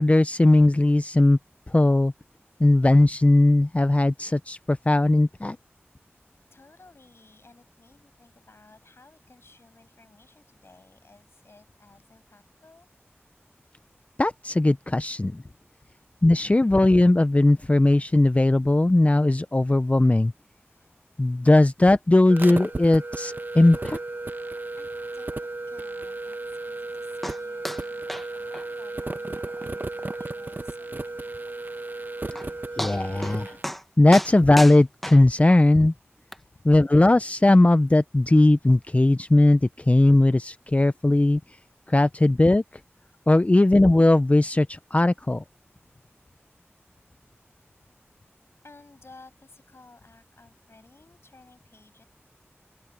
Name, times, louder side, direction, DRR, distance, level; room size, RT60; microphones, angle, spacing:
voice 1, 0.0-1.4 1.7-2.1 2.6-5.6 14.2-15.4 16.2-20.3 21.2-24.0 32.8-33.6 34.0-35.9 36.6-41.4 41.9-42.6 43.3-45.4, left 2 dB, 30° left, 0.6 m, -18 dB
voice 2, 6.5-12.9 15.8-15.9 20.7-21.0 24.4-31.3 32.3-32.6 36.4-36.7 37.6-37.7 45.8-45.9 47.1-47.2 48.6-52.0, left 3 dB, 65° left, 7.6 m, -55 dB
sound 1, 22.3-33.6, right 2 dB, 45° right, 1.1 m, -34 dB
sound 2, 27.2-27.4 27.6-27.8 28.1-28.3 28.5-28.6 29.1-29.2 29.6-29.7 30.1-30.2 31.9-32.0 32.4-32.5 32.8-33.4 33.6-33.8 34.1-35.6 36.3-36.4, equal, 5° left, 1.4 m, -33 dB
wide cardioid pair, 55°, 5 cm